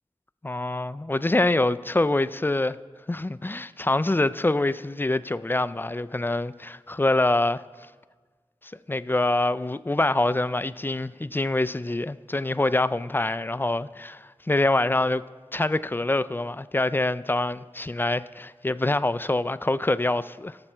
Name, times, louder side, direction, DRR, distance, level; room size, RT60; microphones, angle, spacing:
voice 1, 0.4-2.8 3.1-7.6 8.6-15.2 15.5-20.6, left 2 dB, 20° left, 0.3 m, -25 dB
17.0 x 6.0 x 4.4 m
wide cardioid pair, 40°, 11 cm